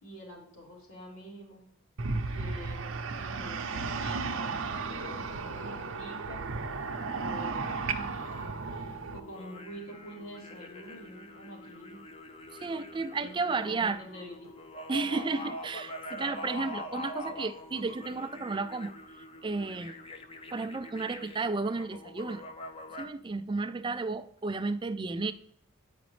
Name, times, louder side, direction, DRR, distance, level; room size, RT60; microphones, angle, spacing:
voice 1, 0.0-1.7 2.3-6.4 7.2-8.0 8.6-12.0 13.2-14.4, equal, 80° left, 2.7 m, -46 dB
sound 1, 2.0-9.2, right 4 dB, 65° right, 0.6 m, -34 dB
sound 2, 4.5-23.1, left 1 dB, 25° left, 0.5 m, -45 dB
voice 2, 12.5-14.0 14.9-18.9 19.4-20.0 20.5-22.4 23.0-25.3, right 3 dB, 20° right, 0.3 m, -33 dB
9.4 x 5.0 x 3.1 m
head